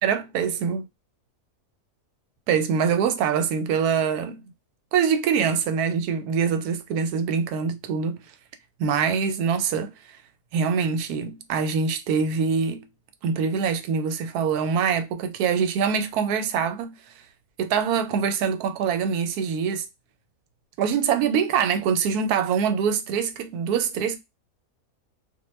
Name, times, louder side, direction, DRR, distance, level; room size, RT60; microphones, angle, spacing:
voice 1, 0.0-0.8 2.5-4.4 4.9-8.2 8.8-9.9 10.5-12.9 13.2-16.9 17.6-19.9 20.8-24.2, right 6 dB, 90° right, 1.1 m, -24 dB
2.4 x 2.2 x 3.0 m
omnidirectional pair, 1.6 m